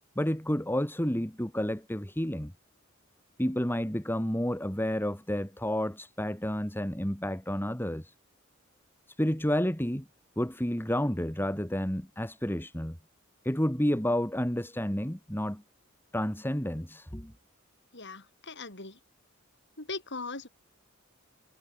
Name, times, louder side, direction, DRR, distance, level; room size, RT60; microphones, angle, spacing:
voice 1, 0.2-2.5 3.4-8.1 9.2-10.0 10.4-13.0 13.4-15.6 16.1-17.3, equal, 10° left, 2.4 m, -30 dB
voice 2, 17.9-19.0 19.8-20.5, left 3 dB, 55° left, 7.7 m, -39 dB
head